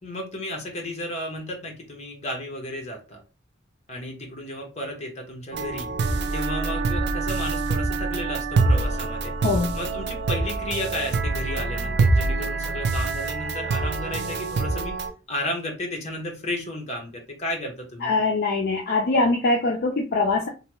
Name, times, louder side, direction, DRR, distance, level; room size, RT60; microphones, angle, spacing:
voice 1, 0.0-3.2 3.9-5.9 6.3-9.3 9.7-15.0 15.3-18.1, left 1 dB, 35° left, 1 dB, 0.9 m, -33 dB
sound 1, 5.5-15.1, right 3 dB, 55° right, 0.4 m, -25 dB
voice 2, 18.0-20.5, left 3 dB, 50° left, 1 dB, 0.4 m, -22 dB
2.9 x 2.2 x 2.9 m, 0.31 s
head